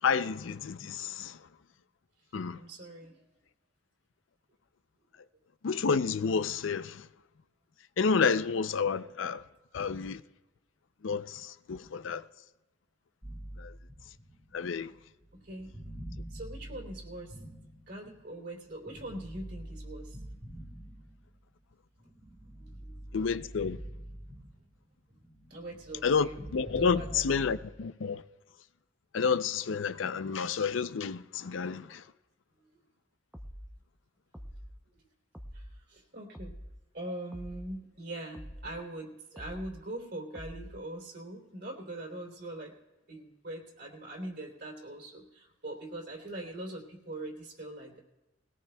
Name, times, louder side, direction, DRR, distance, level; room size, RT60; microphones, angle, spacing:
voice 1, 0.0-1.4 2.3-2.6 5.6-7.0 8.0-9.4 9.7-10.2 11.0-12.2 13.6-13.7 14.5-14.9 23.1-23.8 26.0-28.2 29.1-32.0, left 5 dB, 85° left, 0.5 m, -30 dB
voice 2, 2.5-3.3 15.3-15.7 16.3-17.4 17.9-20.2 22.6-23.1 25.5-26.4 26.7-27.4 32.6-32.7 35.5-36.5 36.9-42.8 43.1-48.0, right 1 dB, 60° right, 3.2 m, -42 dB
sound 1, 13.2-18.3 18.9-21.5 22.0-24.9 25.1-27.8, right 1 dB, 20° right, 1.7 m, -46 dB
sound 2, 33.3-33.7 34.3-34.7 35.3-35.7 36.3-36.7 37.3-37.7 38.3-38.7 39.4-39.8 40.4-40.8, equal, 5° right, 0.7 m, -45 dB
21.0 x 17.5 x 2.3 m
head